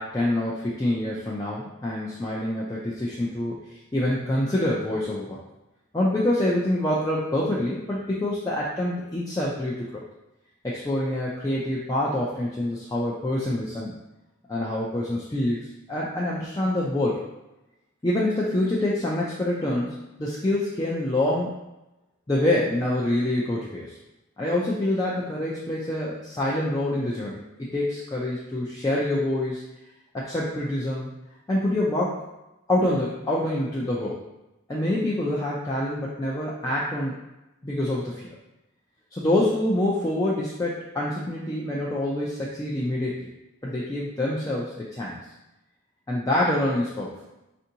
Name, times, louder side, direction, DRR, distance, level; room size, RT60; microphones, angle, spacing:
voice 1, 0.0-3.6 3.9-5.4 5.9-10.0 10.6-14.0 14.5-15.6 15.9-17.2 18.0-21.6 22.3-23.9 24.4-29.6 30.1-31.1 31.5-32.2 32.7-34.2 34.7-37.1 37.6-38.3 39.1-43.3 43.6-45.2 46.1-47.1, left 1 dB, 15° left, -6 dB, 0.4 m, -26 dB
4.4 x 2.6 x 2.7 m, 0.94 s
head